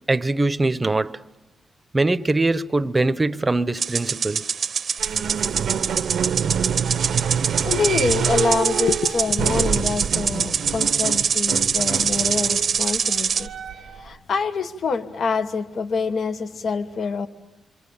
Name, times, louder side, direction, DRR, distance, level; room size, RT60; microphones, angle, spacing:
voice 1, 0.1-1.2 1.9-4.4, right 2 dB, 20° right, 0.8 m, -22 dB
sound 1, 3.8-13.5, right 6 dB, 60° right, 0.8 m, -24 dB
sound 2, 5.0-14.1, right 8 dB, 90° right, 0.9 m, -27 dB
voice 2, 7.2-17.3, left 4 dB, 65° left, 1.2 m, -26 dB
27.5 x 25.5 x 7.1 m
cardioid pair, 110°, 0 cm